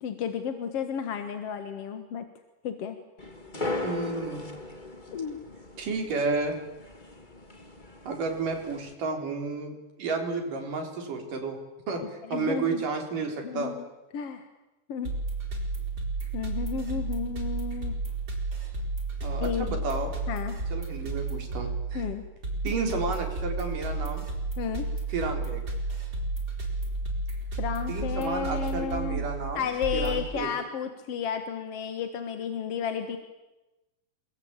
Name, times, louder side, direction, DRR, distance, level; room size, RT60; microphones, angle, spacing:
voice 1, 0.0-2.2 2.6-3.0 5.1-5.4 12.3-12.9 13.4-13.9 14.1-14.5 14.9-15.1 16.3-17.9 19.3-19.8 20.3-20.6 21.9-22.2 24.6-24.9 27.6-29.3 29.6-33.2, left 7 dB, 55° left, 8 dB, 2.0 m, -32 dB
sound 1, 3.2-8.9, left 2 dB, 15° left, 2.0 m, -38 dB
voice 2, 3.5-4.8 5.8-6.6 8.1-11.6 11.9-13.7 19.2-20.1 20.7-22.0 22.6-24.3 25.1-25.6 27.9-30.5, right 4 dB, 60° right, 4 dB, 5.5 m, -32 dB
sound 2, 15.1-30.3, right 3 dB, 25° right, 4.6 m, -32 dB
27.0 x 22.5 x 8.9 m, 1.0 s
omnidirectional pair, 4.2 m